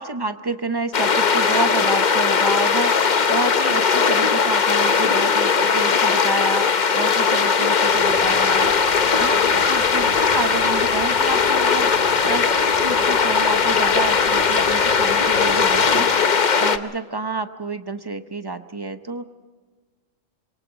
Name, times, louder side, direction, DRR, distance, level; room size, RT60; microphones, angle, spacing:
voice 1, 0.0-8.9 9.2-19.2, right 3 dB, 25° right, 9 dB, 0.7 m, -29 dB
sound 1, 0.9-16.8, left 5 dB, 40° left, 0.9 m, -19 dB
sound 2, 7.8-16.1, left 1 dB, 75° left, 5.8 m, -39 dB
25.5 x 23.0 x 5.0 m, 1.4 s
omnidirectional pair, 1.3 m